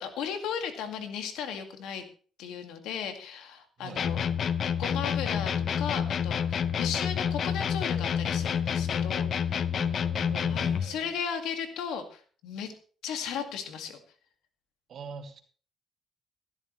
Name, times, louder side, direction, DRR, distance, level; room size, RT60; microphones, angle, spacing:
voice 1, 0.0-2.1 2.4-4.3 4.8-9.6 10.5-12.7 13.0-14.0, left 7 dB, 90° left, 6 dB, 2.1 m, -36 dB
voice 2, 3.8-4.1 9.7-11.1 14.9-15.4, right 6 dB, 65° right, 4 dB, 2.5 m, -44 dB
sound 1, 4.0-10.9, left 7 dB, 60° left, 0.7 m, -28 dB
15.5 x 12.5 x 3.2 m, 0.42 s
cardioid pair, 90°, 0 cm